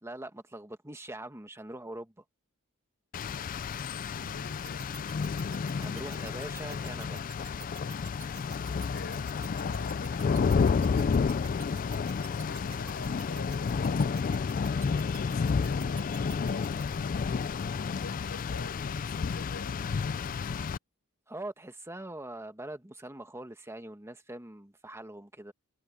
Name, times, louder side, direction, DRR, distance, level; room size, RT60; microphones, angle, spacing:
voice 1, 0.0-2.1 5.7-7.2 21.3-25.5, right 1 dB, 10° right, 1.7 m, -43 dB
Rain, 3.1-20.8, left 5 dB, 40° left, 0.3 m, -31 dB
voice 2, 4.1-5.0 8.8-11.8 12.3-14.6 15.1-20.5, left 2 dB, 60° left, 5.4 m, -47 dB
sound 1, 4.6-16.8, right 12 dB, 70° right, 1.8 m, -49 dB
head